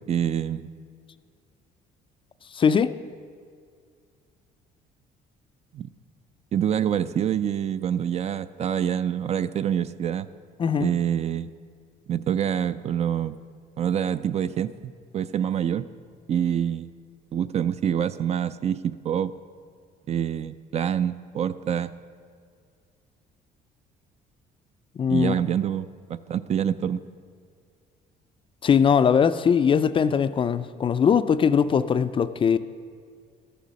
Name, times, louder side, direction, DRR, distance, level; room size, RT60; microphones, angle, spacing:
voice 1, 0.1-0.7 5.7-5.9 6.5-10.3 10.8-11.5 12.1-13.3 13.8-15.9 16.3-16.9 17.3-19.3 20.1-21.9 25.1-27.0, right 9 dB, 40° right, 14 dB, 0.4 m, -26 dB
voice 2, 2.5-2.9 10.6-10.9 25.0-25.4 28.6-32.6, left 7 dB, 30° left, 13 dB, 0.4 m, -21 dB
13.0 x 6.8 x 6.3 m, 2.2 s
cardioid pair, 110°, 17 cm